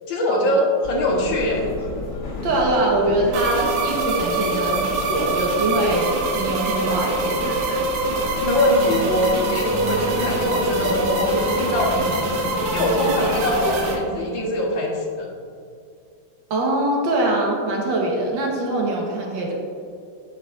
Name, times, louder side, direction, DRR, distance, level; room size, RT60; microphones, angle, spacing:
voice 1, 0.1-1.6 8.4-12.3 12.7-15.3, left 1 dB, 75° left, -1 dB, 1.8 m, -23 dB
sound 1, 0.8-13.9, left 2 dB, 50° left, 1.3 m, -34 dB
voice 2, 2.4-7.8 16.5-19.5, right 1 dB, 75° right, -2 dB, 1.9 m, -23 dB
sound 2, 3.3-14.0, right 3 dB, 60° right, 1.2 m, -24 dB
sound 3, 4.6-14.0, equal, 25° right, 1.4 m, -34 dB
8.8 x 7.0 x 2.4 m, 2.4 s
omnidirectional pair, 2.1 m